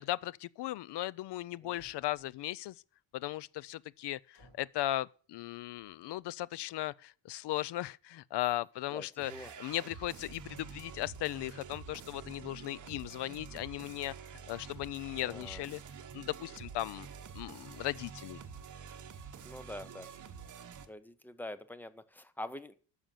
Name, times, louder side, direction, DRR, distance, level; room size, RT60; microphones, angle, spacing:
voice 1, 0.0-2.8 3.1-9.3 9.6-14.1 14.5-15.8 16.1-17.1 17.3-18.4, left 15 dB, 65° left, 0.5 m, -37 dB
sound 1, 1.7-2.6 4.3-4.8 5.5-5.9, equal, 40° left, 6.4 m, -63 dB
voice 2, 8.9-9.5 15.2-15.6 19.4-20.1 20.9-22.8, left 1 dB, 5° left, 0.5 m, -45 dB
sound 2, 9.2-20.9, right 6 dB, 40° right, 0.9 m, -48 dB
10.5 x 6.5 x 7.4 m
wide cardioid pair, 175°, 44 cm